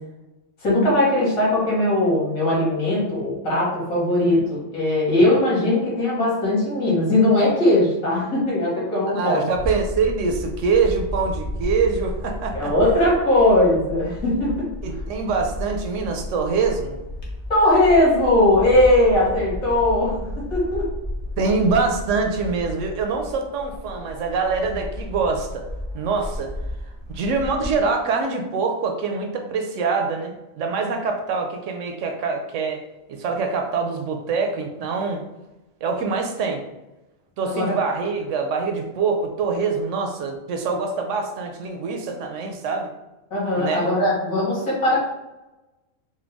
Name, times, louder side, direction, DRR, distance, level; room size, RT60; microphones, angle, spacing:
voice 1, 0.6-9.4 12.5-14.7 17.5-20.9 37.5-37.7 43.3-45.0, left 1 dB, 90° left, -6 dB, 2.1 m, -19 dB
voice 2, 9.1-12.7 14.8-17.0 21.4-25.6 25.9-26.5 27.1-32.8 33.1-35.2 35.8-36.6 37.4-42.9 43.5-43.9, right 4 dB, 70° right, 3 dB, 0.9 m, -24 dB
Bird / Wind, 9.5-27.8, left 1 dB, 40° left, 0.8 m, -33 dB
4.4 x 2.2 x 3.4 m, 1.0 s
omnidirectional pair, 1.4 m